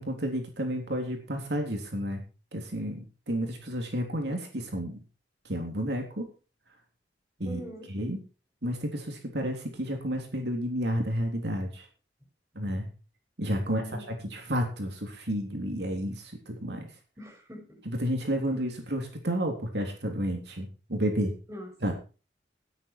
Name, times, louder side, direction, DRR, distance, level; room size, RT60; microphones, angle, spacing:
voice 1, 0.0-2.2 2.5-5.0 5.5-6.3 7.4-7.6 7.9-8.2 8.6-11.9 12.6-12.9 13.4-13.8 14.3-16.9 17.9-21.3 21.8-21.9, equal, 65° right, 3 dB, 3.5 m, -31 dB
voice 2, 7.4-7.9 13.7-14.2 17.2-17.8 21.5-21.7, equal, 20° right, 2 dB, 6.1 m, -43 dB
16.0 x 10.5 x 4.5 m, 0.34 s
head